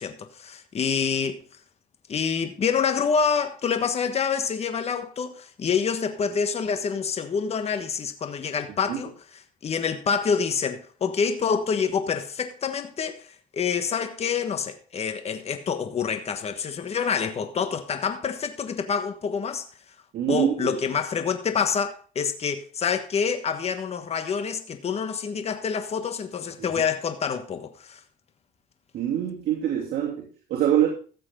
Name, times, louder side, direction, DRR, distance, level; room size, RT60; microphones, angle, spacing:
voice 1, 0.0-1.4 2.1-19.6 20.3-28.0, left 6 dB, 40° left, 1.3 m, -27 dB
voice 2, 20.1-20.8 26.6-26.7 28.9-30.9, right 10 dB, 65° right, 2.8 m, -25 dB
14.5 x 7.6 x 3.7 m
cardioid pair, 110°, 17 cm